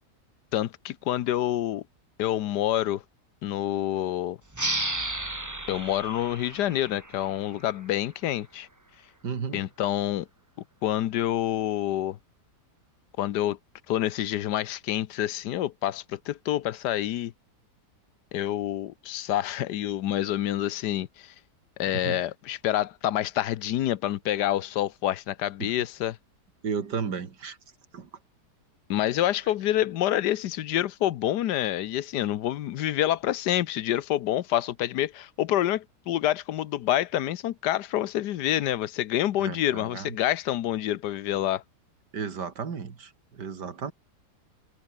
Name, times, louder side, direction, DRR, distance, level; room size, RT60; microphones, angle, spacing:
voice 1, 0.5-1.8 2.2-3.0 3.4-4.4 5.7-8.7 9.5-10.3 10.8-12.2 13.2-13.6 13.9-17.3 18.3-21.3 21.8-26.2 28.9-41.6, left 12 dB, 85° left, 1.4 m, -27 dB
sound 1, 4.5-7.8, right 2 dB, 10° right, 1.4 m, -33 dB
voice 2, 9.2-9.6 22.0-22.2 25.6-25.7 26.6-27.6 27.9-28.1 39.4-40.0 42.1-43.1 43.4-43.9, right 6 dB, 85° right, 2.7 m, -33 dB
omnidirectional pair, 1.8 m